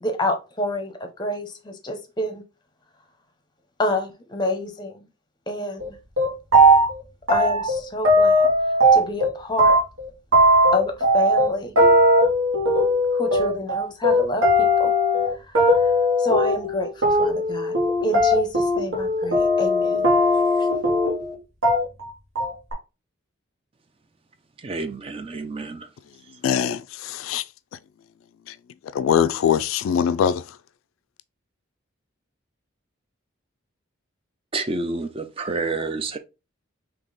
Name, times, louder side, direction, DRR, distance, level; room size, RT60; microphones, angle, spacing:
voice 1, 0.0-2.4 3.8-5.1 5.5-6.0 7.3-8.5 8.9-9.8 10.7-11.7 13.1-14.9 15.3-15.9 16.2-17.7 18.0-20.1 20.6-20.7, left 1 dB, 20° left, 0.7 m, -28 dB
sound 1, 5.8-5.9 6.2-7.0 7.3-9.3 9.6-21.3 21.6-22.1 22.4-22.7, equal, 85° right, 1.5 m, -18 dB
voice 2, 24.6-25.9 34.5-36.2, right 3 dB, 25° right, 0.4 m, -29 dB
voice 3, 26.4-27.4 28.9-30.4, left 8 dB, 85° left, 0.3 m, -22 dB
3.6 x 2.9 x 3.9 m
head